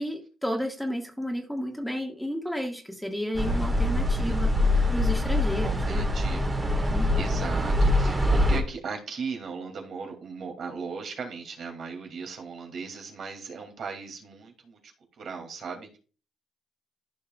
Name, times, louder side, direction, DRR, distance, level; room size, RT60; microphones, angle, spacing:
voice 1, 0.0-4.5 4.9-6.1 6.9-7.2, equal, 5° left, 2 dB, 1.6 m, -32 dB
sound 1, 3.3-8.6, left 1 dB, 20° right, 1.6 m, -24 dB
voice 2, 4.1-4.7 5.3-5.4 5.6-16.0, right 5 dB, 60° right, 3 dB, 2.3 m, -38 dB
14.0 x 5.4 x 2.3 m, 0.36 s
cardioid pair, 90°, 0 cm